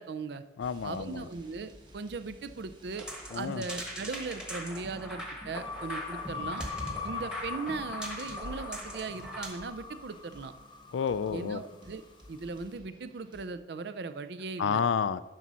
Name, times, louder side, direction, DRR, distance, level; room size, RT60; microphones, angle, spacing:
voice 1, 0.0-0.4 0.8-3.1 3.3-6.6 7.0-10.5 11.3-12.0 12.3-14.8, right 4 dB, 60° right, 11 dB, 0.4 m, -38 dB
voice 2, 0.6-1.3 3.3-3.6 10.9-11.6 14.6-15.2, left 6 dB, 85° left, 16 dB, 0.4 m, -30 dB
sound 1, 0.6-7.0 7.3-7.6 8.1-8.5 8.8-13.5, equal, 25° right, 1.0 m, -55 dB
sound 2, 2.9-9.5, equal, 5° right, 1.2 m, -41 dB
sound 3, 5.5-11.9, left 4 dB, 25° left, 0.5 m, -41 dB
10.0 x 4.1 x 6.1 m, 1.2 s
head